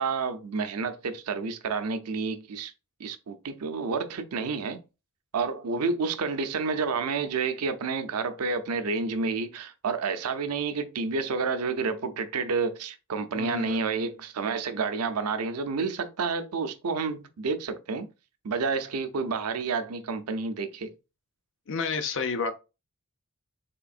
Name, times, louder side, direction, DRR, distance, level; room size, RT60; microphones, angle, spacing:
voice 1, 0.0-2.7 3.0-4.8 5.3-18.1 18.4-20.9, right 4 dB, 90° right, 0.6 m, -29 dB
voice 2, 13.3-13.8 21.7-22.5, left 5 dB, 60° left, 0.6 m, -30 dB
3.6 x 3.3 x 2.4 m
head